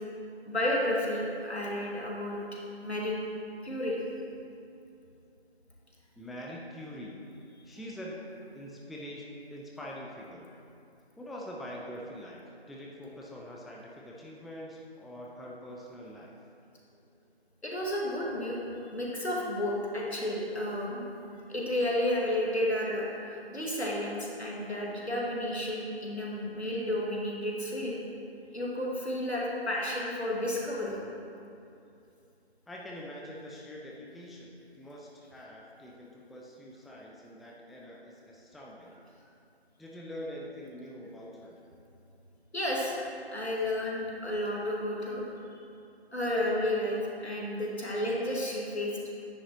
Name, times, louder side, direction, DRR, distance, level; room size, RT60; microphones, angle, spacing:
voice 1, 0.5-2.4 2.8-3.2 3.6-4.0 17.6-18.6 18.9-21.0 21.5-23.2 23.5-27.9 28.5-30.9 42.5-43.0 43.3-45.4 46.1-47.0 47.2-48.9, left 1 dB, 85° left, -3 dB, 1.9 m, -31 dB
voice 2, 6.2-7.2 7.6-8.1 8.5-10.5 11.2-16.3 32.7-38.9 39.8-41.6, equal, ahead, -3 dB, 0.4 m, -44 dB
9.8 x 7.4 x 2.9 m, 2.6 s
figure-of-eight pair, 175°, 32 cm